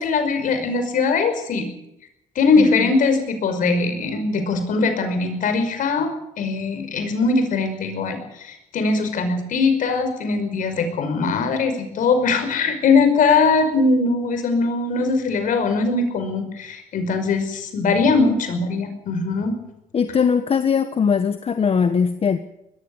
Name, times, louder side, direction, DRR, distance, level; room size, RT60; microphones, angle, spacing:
voice 1, 0.0-1.7 2.4-6.1 6.4-19.5, left 4 dB, 65° left, 7 dB, 5.5 m, -21 dB
voice 2, 2.6-2.9 19.9-22.4, left 6 dB, 40° left, 10 dB, 1.3 m, -20 dB
20.5 x 15.0 x 9.8 m, 0.84 s
supercardioid pair, 75°, 15 cm